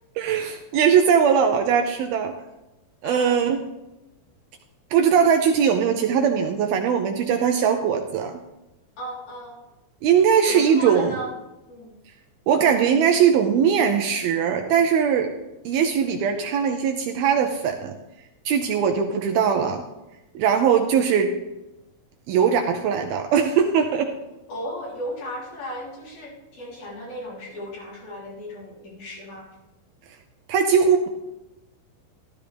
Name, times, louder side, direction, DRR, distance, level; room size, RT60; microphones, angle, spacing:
voice 1, 0.2-2.3 3.0-3.6 4.9-8.4 10.0-11.2 12.5-15.3 15.7-17.9 18.5-19.8 20.4-21.4 22.3-24.1 30.5-31.1, right 7 dB, 80° right, 4 dB, 2.3 m, -20 dB
voice 2, 9.0-9.6 10.5-11.3 11.7-12.0 20.5-20.8 24.5-29.5, equal, 60° left, -5 dB, 5.4 m, -35 dB
14.0 x 13.5 x 3.4 m, 0.98 s
omnidirectional pair, 4.9 m